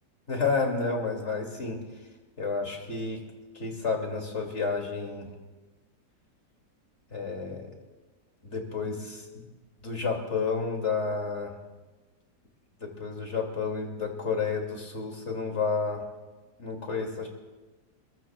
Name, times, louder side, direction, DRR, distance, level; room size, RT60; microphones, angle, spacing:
voice 1, 0.3-1.8 2.4-3.2 3.5-5.3 7.1-7.7 8.4-9.4 9.8-11.5 12.8-16.0 16.6-17.3, left 4 dB, 40° left, 1 dB, 2.7 m, -30 dB
28.0 x 21.5 x 2.3 m, 1.2 s
omnidirectional pair, 1.8 m